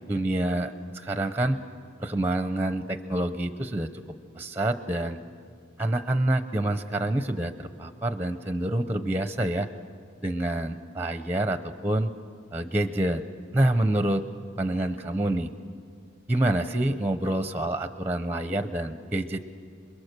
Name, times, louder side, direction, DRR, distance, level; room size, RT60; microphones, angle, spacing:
voice 1, 0.1-1.6 2.0-3.9 4.4-5.2 5.8-9.7 10.2-12.1 12.5-13.2 13.5-14.2 14.6-15.5 16.3-19.4, right 1 dB, 10° right, 9 dB, 0.6 m, -27 dB
27.5 x 21.5 x 6.7 m, 2.1 s
head